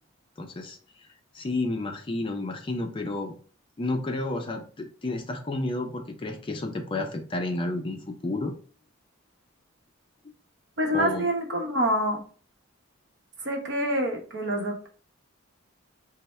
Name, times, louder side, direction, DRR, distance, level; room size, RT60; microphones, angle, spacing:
voice 1, 0.4-0.8 1.3-3.4 3.8-8.5 10.9-11.3, left 2 dB, 25° left, 4 dB, 0.4 m, -31 dB
voice 2, 10.8-12.2 13.4-14.9, equal, 55° right, 1 dB, 0.8 m, -26 dB
3.2 x 2.0 x 4.2 m, 0.42 s
head